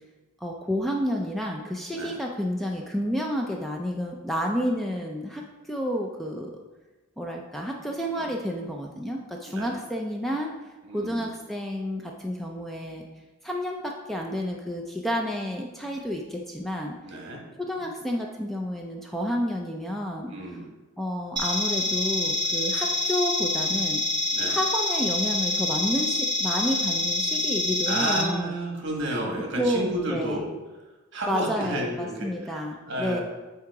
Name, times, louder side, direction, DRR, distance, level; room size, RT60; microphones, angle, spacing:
voice 1, 0.4-6.5 7.2-10.5 10.9-13.0 13.4-16.9 17.6-20.3 21.0-24.0 24.5-28.5 29.6-30.4 31.3-33.2, equal, ahead, 0 dB, 0.4 m, -30 dB
voice 2, 10.8-11.3 17.0-17.4 20.3-20.7 24.3-24.6 27.9-30.5 31.1-33.2, right 1 dB, 55° right, 0 dB, 1.3 m, -31 dB
sound 1, 21.4-28.2, left 2 dB, 20° right, 1.3 m, -26 dB
8.3 x 2.9 x 4.6 m, 1.2 s
head